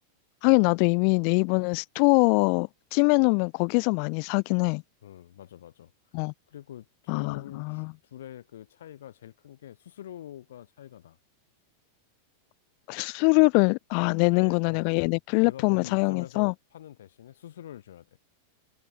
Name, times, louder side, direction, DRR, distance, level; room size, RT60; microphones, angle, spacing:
voice 1, 0.4-4.8 6.1-6.3 7.1-7.9 12.9-16.5, left 40 dB or more, 45° left, 0.3 m, -23 dB
voice 2, 5.0-5.9 6.5-11.2 14.1-14.9 15.4-18.2, left 11 dB, 60° left, 1.6 m, -45 dB
figure-of-eight pair, 90°, 0 cm